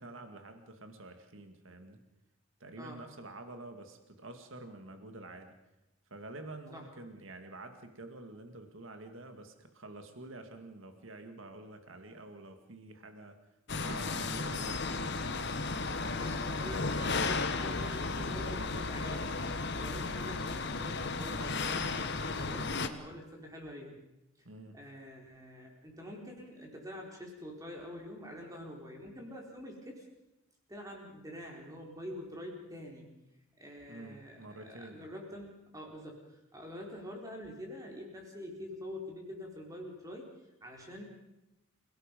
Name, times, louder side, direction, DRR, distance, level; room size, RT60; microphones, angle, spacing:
voice 1, 0.0-2.0 2.6-5.5 6.1-13.4 13.7-15.4 24.4-24.8 33.9-35.1, right 2 dB, 65° right, 6 dB, 2.2 m, -48 dB
sound 1, 13.7-22.9, left 3 dB, 50° left, 1.3 m, -34 dB
voice 2, 15.9-24.0 24.7-30.1 30.7-33.1 33.6-40.3 40.6-41.0, left 1 dB, 15° right, 0 dB, 4.2 m, -46 dB
29.5 x 17.5 x 5.4 m, 0.95 s
head